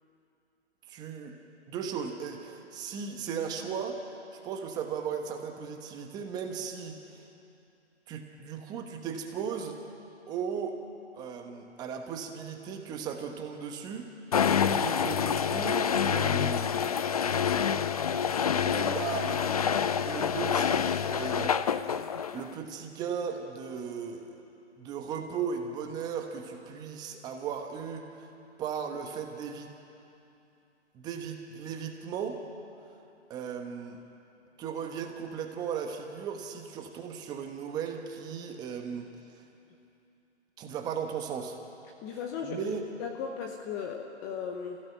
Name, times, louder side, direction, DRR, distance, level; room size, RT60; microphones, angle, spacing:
voice 1, 0.9-1.4 1.7-4.0 4.3-7.2 8.1-9.8 10.3-10.8 11.1-14.5 14.8-16.9 18.6-19.5 20.0-21.5 22.3-24.3 24.8-28.3 28.6-29.7 30.9-32.4 33.3-34.0 34.6-39.1 40.6-41.6 42.4-42.9, right 7 dB, 10° right, 4 dB, 1.1 m, -36 dB
sound 1, 14.3-22.5, left 7 dB, 35° left, 0.5 m, -27 dB
voice 2, 42.0-44.8, left 6 dB, 15° left, 2 dB, 0.8 m, -37 dB
28.0 x 16.0 x 9.0 m, 2.8 s
figure-of-eight pair, 145°, 35 cm